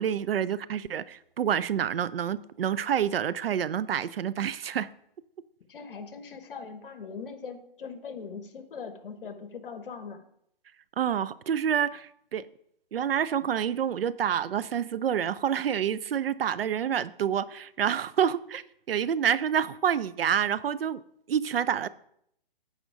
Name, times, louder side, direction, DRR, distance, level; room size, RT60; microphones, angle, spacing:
voice 1, 0.0-4.9 11.0-12.4 12.9-21.0 21.3-21.9, right 9 dB, 80° right, 0.5 m, -28 dB
voice 2, 5.7-10.2, left 5 dB, 65° left, 1.2 m, -41 dB
8.4 x 5.1 x 4.7 m
hypercardioid pair, 145°, 29 cm